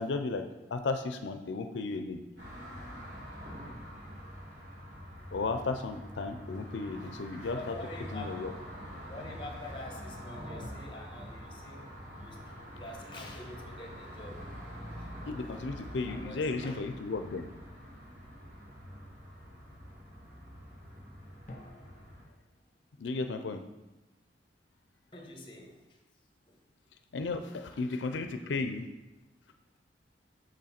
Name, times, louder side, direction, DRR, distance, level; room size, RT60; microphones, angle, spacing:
voice 1, 0.0-2.2 5.3-7.8 8.1-8.5 15.3-17.5 23.0-23.6 27.1-28.9, left 3 dB, 90° left, 8 dB, 0.5 m, -34 dB
sound 1, 2.4-22.3, equal, 65° right, 2.3 m, -45 dB
voice 2, 7.5-8.4 9.1-14.5 14.9-15.3 16.1-16.8 25.1-26.0 26.5-26.6, left 2 dB, 25° left, 2 dB, 1.2 m, -46 dB
sound 2, 10.6-12.2 16.1-18.0 21.5-23.7, left 1 dB, 45° left, 0.8 m, -54 dB
6.4 x 6.3 x 4.3 m, 1.0 s
head